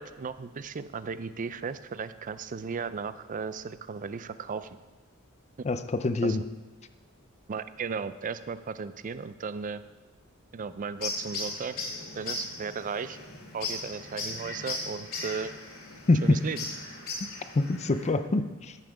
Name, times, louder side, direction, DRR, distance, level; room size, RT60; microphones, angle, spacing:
voice 1, 0.0-4.8 6.2-6.4 7.5-9.8 10.5-11.7 12.2-13.2 13.5-15.5 16.2-16.6, right 5 dB, 40° right, 13 dB, 0.4 m, -35 dB
voice 2, 5.6-6.4 16.1-16.4 17.5-18.8, left 2 dB, 30° left, 10 dB, 0.5 m, -25 dB
sound 1, 11.0-18.1, left 3 dB, 75° left, 2.5 m, -38 dB
14.0 x 5.8 x 4.9 m, 1.2 s
head